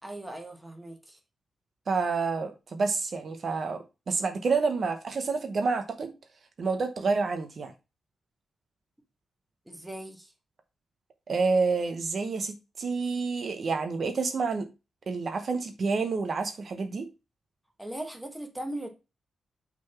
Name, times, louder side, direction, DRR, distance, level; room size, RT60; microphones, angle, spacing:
voice 1, 0.0-1.2 7.0-7.1 9.7-10.3 17.8-18.9, right 1 dB, 5° right, 1.3 m, -39 dB
voice 2, 1.9-6.1 6.6-7.7 11.3-14.7 15.1-17.1, right 4 dB, 40° right, 0.9 m, -28 dB
5.9 x 3.9 x 5.8 m
wide cardioid pair, 170°, 0 cm